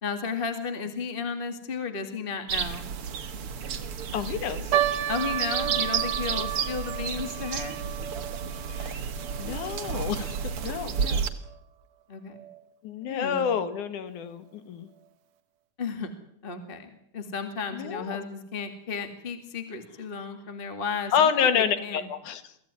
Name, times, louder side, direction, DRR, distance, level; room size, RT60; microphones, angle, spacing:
voice 1, 0.0-2.9 5.1-7.8 12.1-12.4 13.0-13.5 15.8-16.1 16.4-22.0, left 5 dB, 20° left, 7 dB, 2.0 m, -34 dB
sound 1, 2.5-11.3, right 7 dB, 50° right, 2.2 m, -32 dB
voice 2, 4.1-4.8 8.7-9.0 9.4-11.3 12.8-14.9 17.7-18.3 21.1-22.5, left 8 dB, 80° left, 11 dB, 3.2 m, -28 dB
sound 2, 4.7-11.2 11.5-11.6 12.3-12.6 13.2-13.3 13.7-13.8, right 12 dB, 85° right, 2.9 m, -33 dB
24.0 x 15.5 x 9.8 m, 0.71 s
omnidirectional pair, 3.5 m